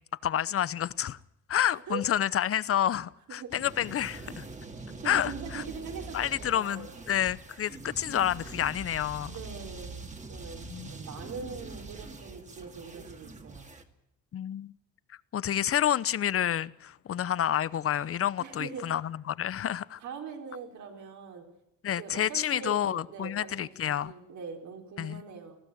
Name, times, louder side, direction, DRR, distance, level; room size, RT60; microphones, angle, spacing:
voice 1, 0.2-1.2 1.5-4.4 5.0-5.6 6.1-9.3 10.7-10.9 14.3-14.7 15.3-20.0 21.8-24.1 25.0-25.2, left 10 dB, 50° left, 0.8 m, -29 dB
sound 1, 3.5-13.8, right 2 dB, 25° right, 2.3 m, -44 dB
voice 2, 4.7-7.0 9.3-10.0 10.3-13.7 18.4-18.9 20.0-21.4 22.0-25.6, right 5 dB, 70° right, 4.5 m, -42 dB
19.5 x 15.0 x 9.2 m
cardioid pair, 90°, 30 cm